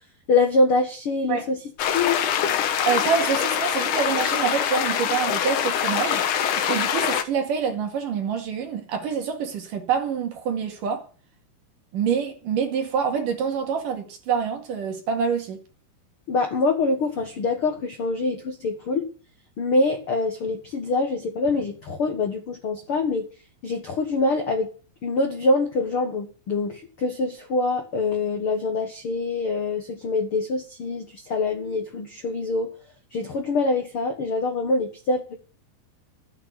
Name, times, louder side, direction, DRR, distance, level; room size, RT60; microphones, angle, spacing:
voice 1, 0.3-1.6 1.9-2.2 16.3-19.1 19.6-23.3 23.6-24.7 25.0-32.7 33.1-35.3, left 3 dB, 85° left, 1.2 m, -24 dB
sound 1, 1.8-7.2, left 9 dB, 65° left, 2.2 m, -24 dB
voice 2, 2.9-11.0 11.9-15.6, right 7 dB, 55° right, 3.3 m, -26 dB
13.5 x 9.2 x 8.3 m
omnidirectional pair, 5.1 m